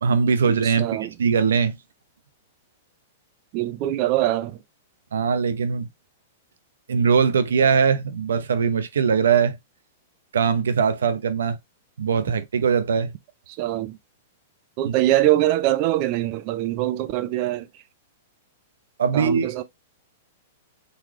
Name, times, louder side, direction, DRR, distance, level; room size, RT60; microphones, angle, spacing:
voice 1, 0.0-0.9 1.2-1.8 5.1-5.9 6.9-9.6 10.3-11.6 12.0-13.1 14.8-14.9 19.0-19.5, right 6 dB, 90° right, 0.7 m, -21 dB
voice 2, 0.6-1.1 3.5-4.5 13.6-14.0 14.8-17.7 19.1-19.6, right 14 dB, 45° right, 0.4 m, -23 dB
4.0 x 3.2 x 3.0 m
hypercardioid pair, 135°, 0 cm